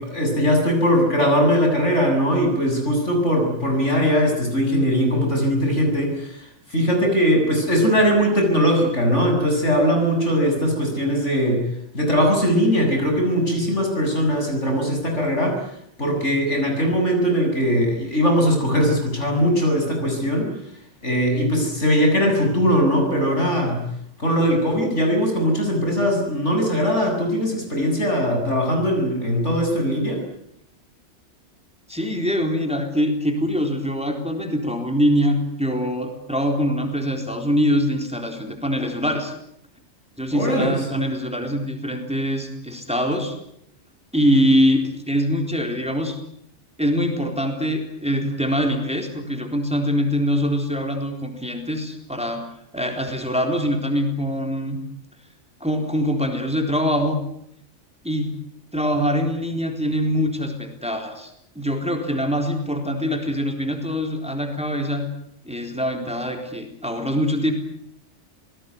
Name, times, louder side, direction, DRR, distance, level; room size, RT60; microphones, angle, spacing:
voice 1, 0.0-11.6 11.9-15.6 16.0-20.5 21.0-23.9 24.2-30.2 40.3-40.8, equal, 75° left, 3 dB, 7.8 m, -20 dB
voice 2, 31.9-39.3 40.2-43.4 44.1-46.2 46.8-54.8 55.6-57.2 58.0-58.3 58.7-65.0 65.4-67.5, equal, 5° right, 4 dB, 3.9 m, -23 dB
27.0 x 19.5 x 9.7 m, 0.74 s
omnidirectional pair, 1.2 m